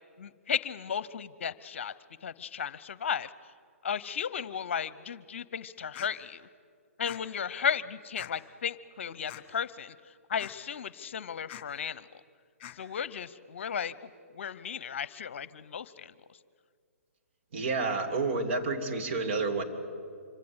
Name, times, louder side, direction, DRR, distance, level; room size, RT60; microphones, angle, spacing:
voice 1, 0.2-1.9 2.2-3.3 3.8-6.5 7.0-9.9 10.3-12.0 12.8-14.1 14.3-16.1, left 7 dB, 55° left, 18 dB, 0.8 m, -34 dB
sound 1, 5.9-6.1 7.0-7.2 8.2-8.3 9.3-9.4 10.4-10.5 11.5-11.6 12.6-12.8, left 12 dB, 30° left, 2.1 m, -44 dB
voice 2, 17.5-19.6, right 3 dB, 50° right, 4 dB, 2.9 m, -29 dB
26.0 x 25.5 x 8.1 m, 2.1 s
figure-of-eight pair, 130°, 8 cm